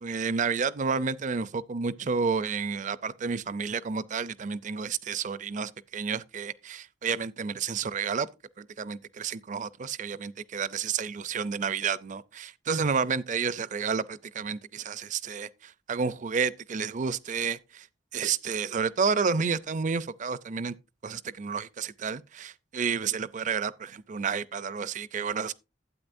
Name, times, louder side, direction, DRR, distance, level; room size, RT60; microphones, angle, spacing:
voice 1, 0.0-8.3 8.6-17.9 18.1-20.7 21.0-25.5, right 5 dB, 40° right, 0.5 m, -30 dB
12.0 x 8.6 x 2.6 m
head